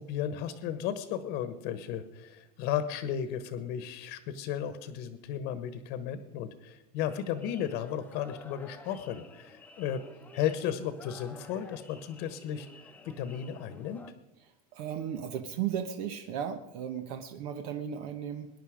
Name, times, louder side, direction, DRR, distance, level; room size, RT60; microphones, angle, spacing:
voice 1, 0.0-10.0 10.3-14.0, left 9 dB, 60° left, 11 dB, 1.2 m, -34 dB
sound 1, 7.1-14.1, left 3 dB, 10° left, 0.9 m, -52 dB
voice 2, 14.7-18.5, right 9 dB, 70° right, 7 dB, 1.3 m, -35 dB
20.5 x 10.5 x 5.1 m, 0.97 s
supercardioid pair, 135°, 20 cm